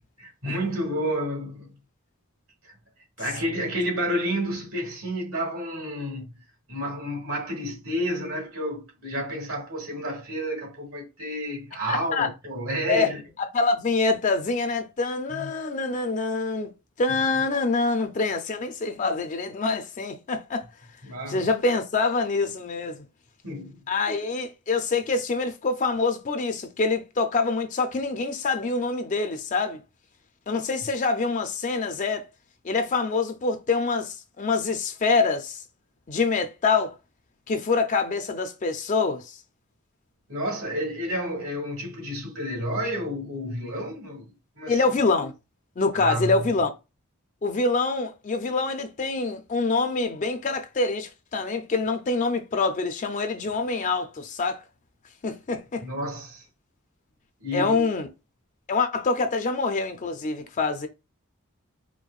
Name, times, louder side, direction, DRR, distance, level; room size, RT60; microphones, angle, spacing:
voice 1, 0.2-1.7 2.6-2.7 3.2-6.3 6.7-13.2 15.3-15.5 21.0-21.5 23.4-23.8 40.3-44.8 45.9-46.4 55.8-56.4 57.4-57.9, equal, 70° right, 1.5 m, -30 dB
voice 2, 11.9-12.3 12.9-13.1 13.5-16.7 17.0-20.6 21.3-23.0 23.9-29.8 30.5-32.2 32.6-35.6 36.1-36.9 37.5-39.4 44.7-45.3 45.8-46.7 47.4-54.6 55.2-55.8 57.5-58.1 58.7-60.9, left 3 dB, 35° left, 0.4 m, -25 dB
4.6 x 2.1 x 2.4 m
head